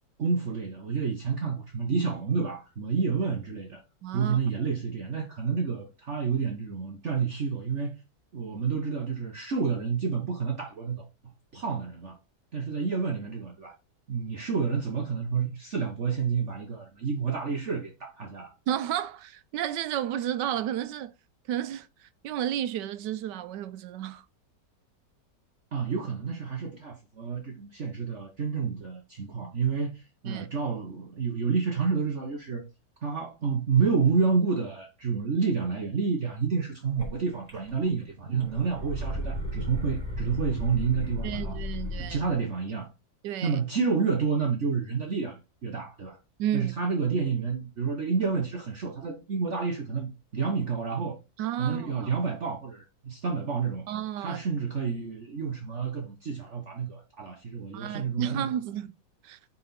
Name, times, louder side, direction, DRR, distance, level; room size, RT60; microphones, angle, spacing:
voice 1, 0.2-3.8 4.1-7.9 8.3-11.1 11.5-12.2 12.5-13.8 14.1-18.5 25.7-32.6 33.0-41.6 42.0-42.9 43.4-46.2 46.5-51.2 51.6-53.9 54.2-58.5, right 5 dB, 50° right, 1.3 m, -29 dB
voice 2, 4.0-4.4 18.7-21.1 21.5-24.2 30.2-30.5 41.2-42.2 43.2-43.6 46.4-46.7 51.4-52.1 53.9-54.4 57.7-58.9 59.2-59.4, right 11 dB, 85° right, 1.3 m, -32 dB
sound 1, 37.0-37.1 37.5-38.0 38.3-42.3, left 1 dB, 20° right, 4.1 m, -34 dB
8.3 x 4.1 x 4.2 m
omnidirectional pair, 1.8 m